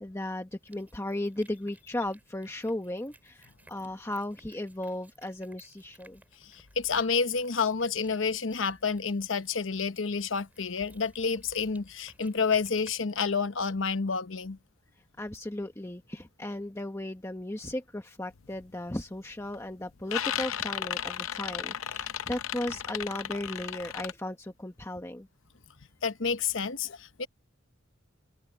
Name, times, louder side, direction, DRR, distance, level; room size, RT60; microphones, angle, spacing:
voice 1, 0.0-6.2 15.2-25.3, left 1 dB, 15° left, 1.1 m, -36 dB
sound 1, 0.6-12.9, right 2 dB, 10° right, 7.3 m, -60 dB
voice 2, 6.4-14.6 26.0-27.3, left 5 dB, 70° left, 1.0 m, -29 dB
sound 2, 18.4-18.6 19.1-19.6 19.8-24.1, left 9 dB, 85° left, 0.6 m, -35 dB
head